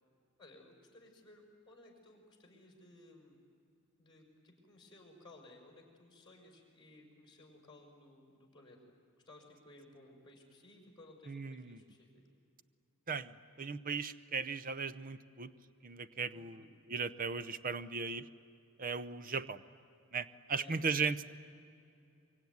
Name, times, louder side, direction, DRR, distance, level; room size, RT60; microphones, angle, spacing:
voice 1, 0.4-3.4 4.0-8.8 9.3-12.1 16.3-16.7 20.6-20.9, left 2 dB, 20° left, 0 dB, 5.4 m, -58 dB
voice 2, 11.3-11.8 13.1-15.5 15.8-18.3 18.8-19.6 20.1-21.3, right 5 dB, 40° right, 14 dB, 0.7 m, -37 dB
24.0 x 23.5 x 9.5 m, 2.5 s
head